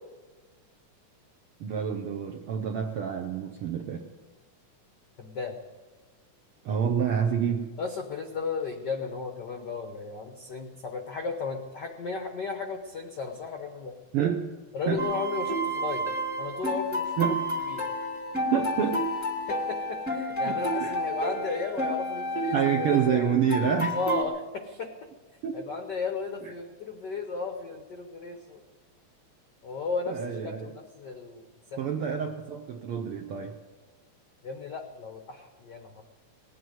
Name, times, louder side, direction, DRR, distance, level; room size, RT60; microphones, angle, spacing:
voice 1, 1.6-4.1 6.6-7.7 14.1-14.5 14.9-15.1 17.2-17.7 18.5-19.0 20.4-20.5 20.8-21.0 22.5-24.0 25.4-25.6 26.4-26.5 30.1-30.7 31.8-33.6, right 8 dB, 75° right, 5 dB, 1.3 m, -28 dB
voice 2, 5.2-5.5 7.8-14.0 14.7-16.1 16.4-17.1 17.7-17.8 19.5-23.2 23.9-24.9 25.5-28.6 29.6-30.2 30.4-31.8 34.4-36.0, left 4 dB, 80° left, 4 dB, 0.9 m, -34 dB
sound 1, 15.0-24.2, equal, 15° left, 0.6 m, -30 dB
19.0 x 7.8 x 9.5 m, 1.3 s
omnidirectional pair, 3.4 m